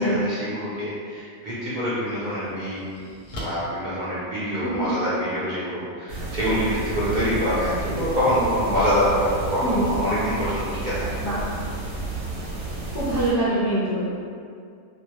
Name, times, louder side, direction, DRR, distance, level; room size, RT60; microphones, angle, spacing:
voice 1, 0.0-3.0 3.3-11.2, equal, 55° right, -10 dB, 0.5 m, -25 dB
sound 1, 1.1-1.2 1.8-4.8, equal, 60° left, 0.7 m, -41 dB
voice 2, 4.6-5.0 9.6-10.0 11.2-11.4 12.9-14.0, right 1 dB, 30° left, -11 dB, 0.3 m, -24 dB
sound 2, 6.1-13.3, right 2 dB, 85° right, 1.0 m, -31 dB
2.2 x 2.1 x 2.8 m, 2.2 s
omnidirectional pair, 1.2 m